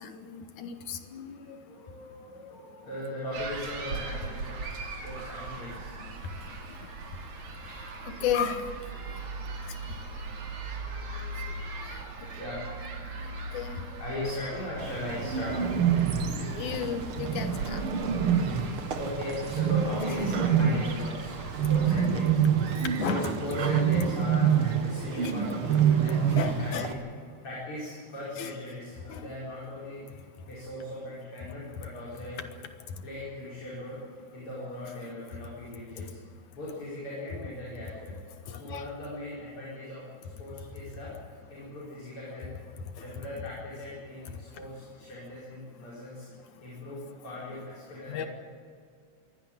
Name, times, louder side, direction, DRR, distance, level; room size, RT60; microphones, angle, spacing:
voice 1, 0.0-1.6 6.0-6.1 7.7-8.7 9.9-10.0 11.8-12.0 13.2-13.9 16.4-17.8 23.0-23.3 25.2-25.3 26.3-26.9 28.4-28.5 29.1-29.3 36.0-36.1 38.5-38.8 48.1-48.3, left 7 dB, 90° left, 8 dB, 2.9 m, -34 dB
voice 2, 1.3-6.7 7.4-8.1 9.0-9.1 9.9-13.5 14.0-15.8 18.0-27.0 27.4-30.0 30.5-32.4 33.0-34.0 34.3-36.2 36.5-38.2 38.5-40.0 40.4-41.1 41.5-42.5 43.0-46.3 46.6-48.3, left 1 dB, 45° left, -7 dB, 6.3 m, -39 dB
sound 1, 3.3-22.1, right 3 dB, 85° right, 4.2 m, -39 dB
Bird, 14.8-26.9, right 7 dB, 55° right, 2.0 m, -27 dB
22.5 x 17.0 x 8.9 m, 2.2 s
omnidirectional pair, 3.3 m